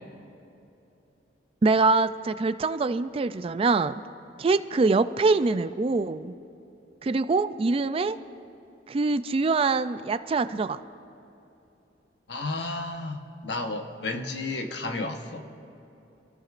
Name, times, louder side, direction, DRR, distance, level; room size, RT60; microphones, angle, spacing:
voice 1, 1.6-3.9 4.4-6.3 7.0-8.2 8.9-10.8, right 3 dB, 30° right, 12 dB, 0.3 m, -24 dB
voice 2, 12.3-13.2 13.4-15.5, left 2 dB, 70° left, 5 dB, 1.1 m, -32 dB
26.0 x 14.5 x 2.5 m, 2.9 s
head